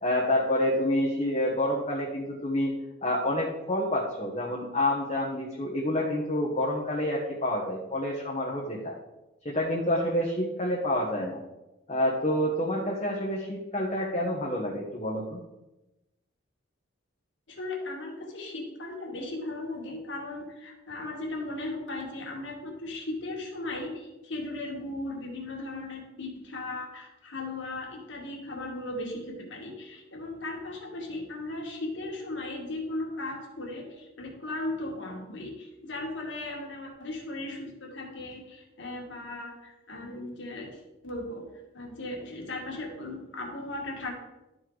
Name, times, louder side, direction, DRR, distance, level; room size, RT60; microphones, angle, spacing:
voice 1, 0.0-8.9 9.4-11.4 11.9-15.4, left 1 dB, 30° left, -3 dB, 1.1 m, -28 dB
voice 2, 17.5-41.5 41.7-44.1, left 2 dB, 60° left, 0 dB, 1.9 m, -37 dB
12.5 x 4.7 x 3.9 m, 0.99 s
head